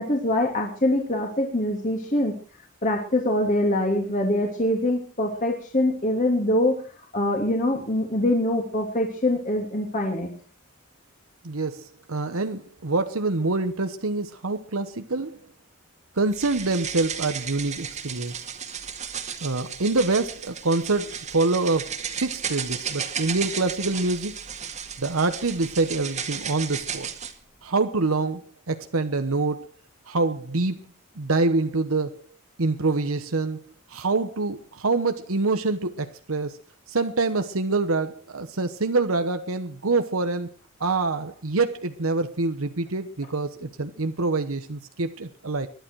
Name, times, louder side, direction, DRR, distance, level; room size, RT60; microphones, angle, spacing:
voice 1, 0.0-2.3 2.8-6.8 7.1-10.3, left 1 dB, 40° left, 3.1 m, -24 dB
voice 2, 11.4-15.4 16.2-18.4 19.4-24.4 25.0-27.1 27.6-29.7 30.1-30.8 31.2-32.3 32.6-33.6 33.9-36.6 36.9-40.5 40.8-45.7, right 3 dB, 90° right, 1.1 m, -26 dB
sound 1, 16.3-27.3, right 7 dB, 35° right, 2.0 m, -34 dB
21.5 x 11.5 x 4.7 m
head